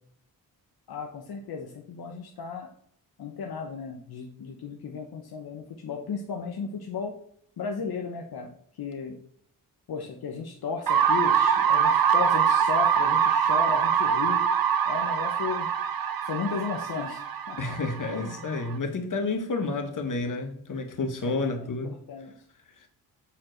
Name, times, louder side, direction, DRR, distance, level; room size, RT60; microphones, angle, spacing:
voice 1, 0.9-2.7 3.2-7.1 7.6-9.2 9.9-14.4 14.8-15.7 16.2-17.8 18.1-18.4 21.2-22.3, left 5 dB, 80° left, 1.1 m, -35 dB
sound 1, 10.9-18.7, right 7 dB, 70° right, 0.9 m, -24 dB
voice 2, 17.6-22.0 22.8-22.9, left 3 dB, 55° left, 1.7 m, -30 dB
7.3 x 4.4 x 6.5 m
cardioid pair, 80°, 37 cm